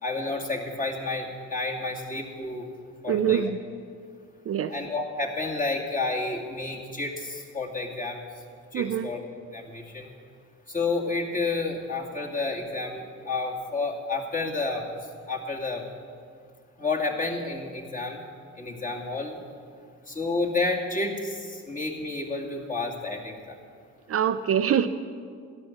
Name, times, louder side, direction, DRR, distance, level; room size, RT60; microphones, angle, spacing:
voice 1, 0.0-2.6 3.0-3.4 4.7-8.2 8.7-9.2 9.5-10.1 10.7-14.8 15.3-15.8 16.8-18.2 18.6-19.4 20.1-23.6, left 3 dB, 25° left, -1 dB, 2.4 m, -30 dB
voice 2, 3.1-3.6 4.5-4.7 8.7-9.1 24.1-24.9, right 9 dB, 50° right, 10 dB, 0.6 m, -24 dB
14.0 x 11.0 x 7.2 m, 2.1 s
cardioid pair, 90°, 30 cm